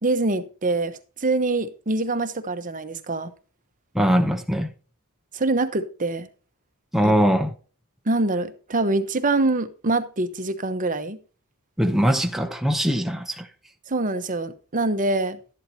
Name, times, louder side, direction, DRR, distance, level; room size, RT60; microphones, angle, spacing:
voice 1, 0.0-3.3 5.3-6.3 7.0-7.1 8.1-11.2 13.9-15.4, right 2 dB, 35° right, 1.0 m, -24 dB
voice 2, 3.9-4.7 6.9-7.5 11.8-13.5, equal, ahead, 0.8 m, -21 dB
12.5 x 11.0 x 2.9 m
head